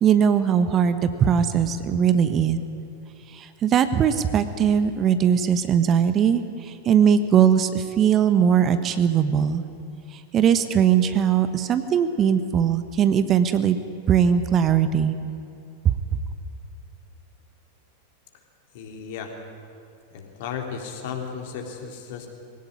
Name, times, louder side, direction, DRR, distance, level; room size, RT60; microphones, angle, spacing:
voice 1, 0.0-2.6 3.3-9.6 10.1-13.8 14.1-15.2 15.8-15.9, right 8 dB, 30° right, 11 dB, 1.1 m, -20 dB
voice 2, 18.7-19.4 20.1-22.3, left 6 dB, 50° left, 3 dB, 3.6 m, -34 dB
21.5 x 17.5 x 9.7 m, 2.6 s
figure-of-eight pair, 90°, 0 cm